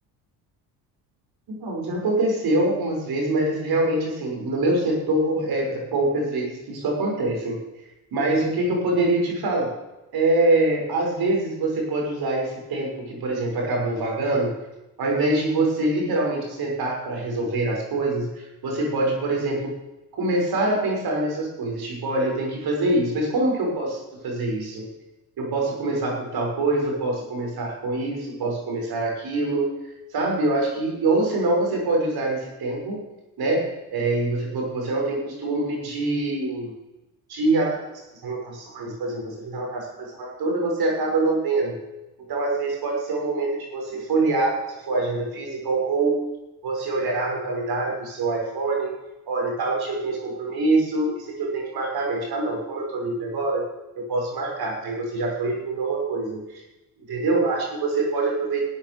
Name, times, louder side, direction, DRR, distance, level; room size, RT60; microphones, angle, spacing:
voice 1, 1.5-7.6 8.1-9.7 10.1-14.5 15.0-19.7 20.1-24.9 25.4-29.7 30.1-33.0 33.4-36.7 37.3-41.8 42.3-44.6 44.9-46.2 46.6-48.9 49.3-53.6 54.0-56.6 57.1-58.6, right 2 dB, 60° right, 0 dB, 6.3 m, -25 dB
16.0 x 8.8 x 7.1 m, 0.98 s
supercardioid pair, 80°, 41 cm